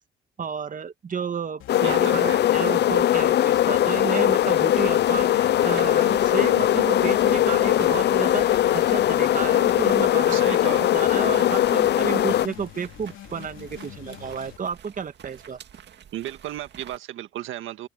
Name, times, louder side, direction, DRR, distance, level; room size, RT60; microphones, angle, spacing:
voice 1, 0.4-15.6, right 6 dB, 40° right, 1.6 m, -32 dB
sound 1, 1.6-14.6, left 13 dB, 85° left, 3.1 m, -43 dB
sound 2, 1.7-12.5, left 12 dB, 60° left, 0.5 m, -20 dB
voice 2, 1.8-2.4 10.3-10.8 16.1-17.9, right 13 dB, 85° right, 1.7 m, -34 dB
sound 3, 4.4-17.0, right 9 dB, 60° right, 2.2 m, -47 dB
cardioid pair, 90°, 20 cm